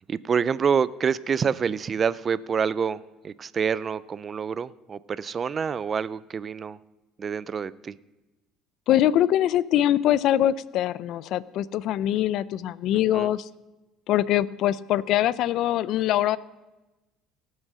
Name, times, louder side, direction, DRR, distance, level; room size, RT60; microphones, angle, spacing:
voice 1, 0.1-6.8 7.2-7.9 13.1-13.3, right 6 dB, 30° right, 19 dB, 0.3 m, -27 dB
voice 2, 8.9-13.5 14.1-16.4, left 12 dB, 60° left, 19 dB, 0.4 m, -23 dB
18.0 x 6.3 x 6.2 m, 1.1 s
cardioid pair, 140°, 0 cm